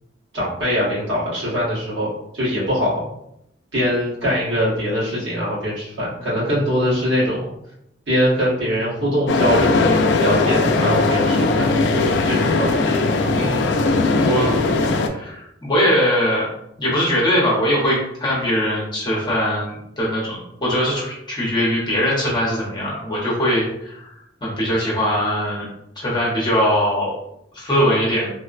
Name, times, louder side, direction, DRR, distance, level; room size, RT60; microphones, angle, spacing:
voice 1, 0.3-2.1 2.3-3.0 3.7-7.5 8.1-9.8 10.2-11.7 12.2-12.9, equal, 80° right, -7 dB, 1.3 m, -22 dB
sound 1, 9.3-15.1, left 3 dB, 70° left, 0.3 m, -18 dB
voice 2, 13.3-13.9 14.1-14.6 15.0-16.5 16.8-24.0 24.4-25.7 26.0-27.2 27.5-28.3, equal, 25° left, -6 dB, 0.7 m, -21 dB
3.2 x 2.0 x 2.4 m, 0.78 s
head